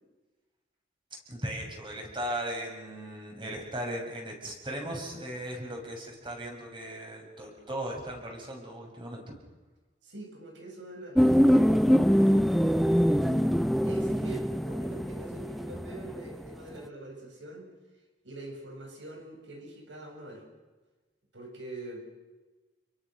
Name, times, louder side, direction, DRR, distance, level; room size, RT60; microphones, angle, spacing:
voice 1, 1.3-9.3, right 1 dB, 30° right, 1 dB, 6.9 m, -37 dB
voice 2, 10.0-17.7 18.2-20.4 21.3-22.1, right 2 dB, 85° right, 2 dB, 7.5 m, -44 dB
sound 1, 11.1-16.5 16.8-16.9, equal, ahead, 0.8 m, -24 dB
28.5 x 23.5 x 6.6 m, 1.2 s
head